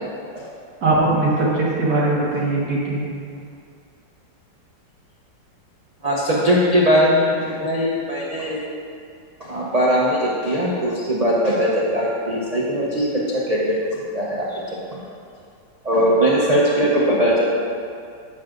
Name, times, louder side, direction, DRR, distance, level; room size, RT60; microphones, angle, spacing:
voice 1, 0.8-3.0, right 2 dB, 55° right, -6 dB, 1.9 m, -20 dB
voice 2, 6.0-8.6 9.4-15.0 15.8-17.5, equal, 80° right, -5 dB, 0.3 m, -20 dB
9.5 x 7.6 x 2.5 m, 2.4 s
omnidirectional pair, 2.0 m